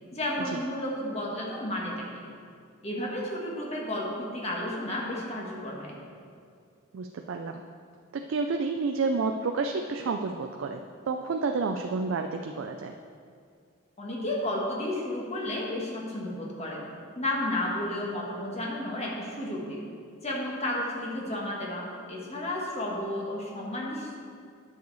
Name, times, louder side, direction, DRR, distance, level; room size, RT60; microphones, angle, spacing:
voice 1, 0.1-2.2 2.8-6.0 14.0-16.9 17.1-19.9 20.2-24.2, left 1 dB, 30° left, -2 dB, 1.3 m, -32 dB
voice 2, 6.9-7.6 8.1-10.8 11.1-12.9, right 4 dB, 65° right, 4 dB, 0.4 m, -30 dB
9.5 x 6.5 x 4.0 m, 2.3 s
head